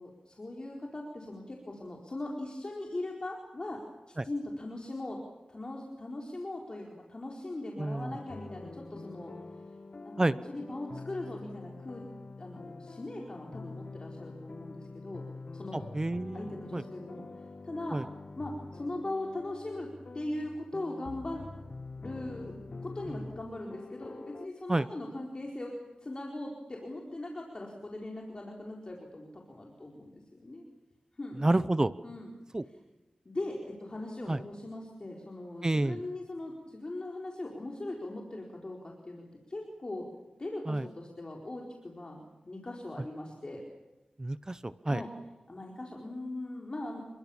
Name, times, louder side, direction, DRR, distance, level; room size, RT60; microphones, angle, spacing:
voice 1, 0.0-3.8 4.2-5.2 5.5-9.3 10.0-12.1 12.4-15.2 15.5-15.8 16.3-17.2 17.6-18.0 18.4-21.4 22.0-22.5 22.8-30.7 31.2-31.4 32.0-32.3 33.2-40.1 40.4-43.6 44.9-45.1 45.5-47.0, left 2 dB, 40° left, 0 dB, 4.3 m, -40 dB
voice 2, 7.8-8.1 10.2-10.4 15.9-16.8 17.9-18.0 24.7-24.9 31.4-31.9 32.5-32.6 34.3-34.4 35.6-36.0 40.7-40.8 44.2-45.0, right 2 dB, 25° right, 14 dB, 0.9 m, -29 dB
sound 1, 8.1-24.5, left 3 dB, 55° left, 1.3 m, -46 dB
29.5 x 23.0 x 7.2 m, 1.0 s
wide cardioid pair, 105°, 2 cm